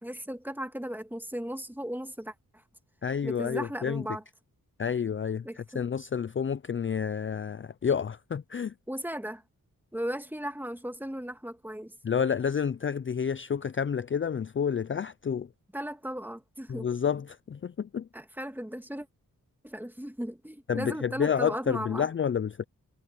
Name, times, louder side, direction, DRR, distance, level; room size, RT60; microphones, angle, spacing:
voice 1, 0.0-2.3 3.2-4.2 5.4-5.8 8.9-9.4 9.9-11.9 15.7-16.9 18.1-19.1 19.6-22.1, equal, 5° right, 2.1 m, -36 dB
voice 2, 3.0-4.1 4.8-8.7 12.0-15.5 16.7-18.1 20.7-22.6, left 7 dB, 35° left, 0.5 m, -29 dB
cardioid pair, 65°, 35 cm